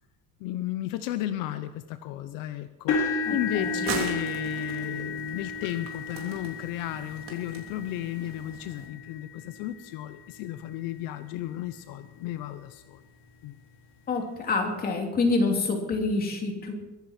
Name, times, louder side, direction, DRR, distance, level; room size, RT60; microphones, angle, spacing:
voice 1, 0.4-13.0 13.4-13.5, left 13 dB, 75° left, 11 dB, 0.9 m, -34 dB
sound 1, 2.9-10.9 11.5-11.8 12.2-12.3 13.7-13.8, left 4 dB, 55° left, 3.4 m, -34 dB
sound 2, 3.2-8.9, right 7 dB, 70° right, 3.2 m, -40 dB
voice 2, 3.3-3.8 14.1-16.7, left 3 dB, 25° left, 2 dB, 2.8 m, -27 dB
22.5 x 10.5 x 4.4 m, 1.0 s
cardioid pair, 170°, 33 cm